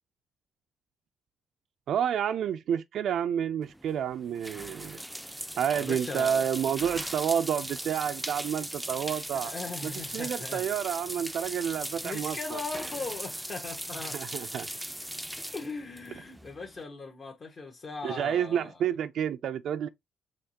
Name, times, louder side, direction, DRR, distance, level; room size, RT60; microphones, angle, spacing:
voice 1, 1.9-5.0 5.6-9.5 9.8-12.6 14.1-14.7 18.0-19.9, right 9 dB, 70° right, 0.3 m, -30 dB
sound 1, 3.6-16.8, right 1 dB, 5° right, 0.4 m, -39 dB
voice 2, 5.7-6.6 9.4-10.6 12.0-14.2 15.5-18.8, left 3 dB, 40° left, 1.2 m, -39 dB
5.7 x 3.1 x 2.8 m
cardioid pair, 90°, 0 cm